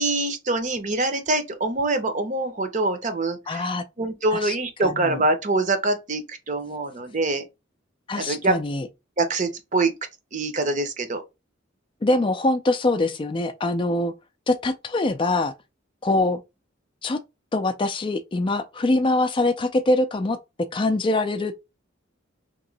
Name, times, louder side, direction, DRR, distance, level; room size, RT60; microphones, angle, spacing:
voice 1, 0.0-3.6 4.0-7.4 8.2-8.6 9.2-9.9 10.3-11.2, right 2 dB, 40° right, 0.7 m, -24 dB
voice 2, 3.5-3.8 4.3-4.6 4.8-5.2 8.1-8.9 12.0-14.1 14.5-15.5 16.0-16.4 17.0-17.2 17.5-20.4 20.7-21.5, left 2 dB, 25° left, 0.4 m, -23 dB
3.0 x 2.8 x 3.9 m
head